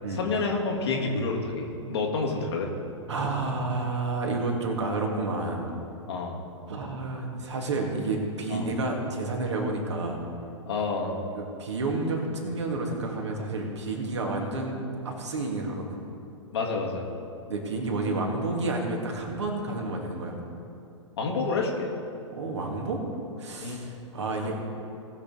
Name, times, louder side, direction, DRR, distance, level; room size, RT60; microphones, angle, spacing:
voice 1, 0.1-2.7 6.1-6.4 8.5-8.6 10.7-11.2 16.5-17.1 21.2-21.9 23.6-23.8, left 4 dB, 60° left, 0 dB, 1.8 m, -28 dB
voice 2, 3.1-5.7 6.7-10.2 11.3-14.8 15.0-16.0 17.5-20.4 22.3-23.0 23.4-24.6, right 2 dB, 65° right, 0 dB, 2.0 m, -30 dB
19.0 x 6.7 x 3.9 m, 2.6 s
figure-of-eight pair, 105°, 16 cm